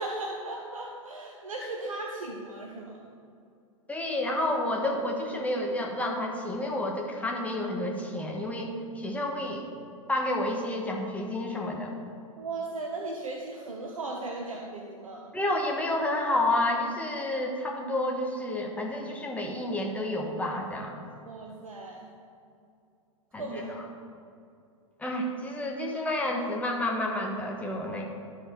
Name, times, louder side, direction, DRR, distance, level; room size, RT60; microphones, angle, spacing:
voice 1, 0.0-3.0 12.4-15.3 21.2-22.1 23.4-23.7, right 2 dB, 80° right, 0 dB, 0.9 m, -37 dB
voice 2, 3.9-9.7 10.1-12.0 15.3-21.0 23.3-23.6 25.0-28.0, left 1 dB, 10° left, 0 dB, 1.3 m, -30 dB
12.5 x 4.8 x 4.6 m, 2.5 s
figure-of-eight pair, 100°, 17 cm